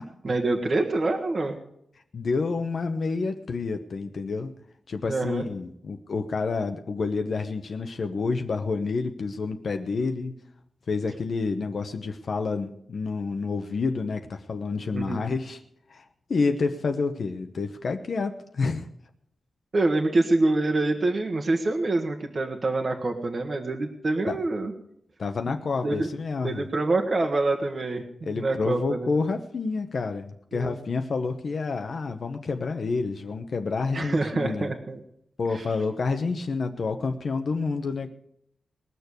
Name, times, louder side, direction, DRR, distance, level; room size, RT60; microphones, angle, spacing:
voice 1, 0.2-1.6 5.1-5.4 14.9-15.2 19.7-24.7 25.8-26.1 26.4-29.1 30.5-30.7 33.9-35.0 35.5-35.6, right 2 dB, 40° right, 3 dB, 1.4 m, -26 dB
voice 2, 2.1-4.5 4.9-10.4 10.9-15.6 15.9-18.9 24.3-24.4 25.2-26.6 28.2-34.7 35.4-38.1, left 4 dB, 55° left, 6 dB, 0.9 m, -29 dB
20.5 x 6.8 x 8.2 m, 0.73 s
wide cardioid pair, 145°, 0 cm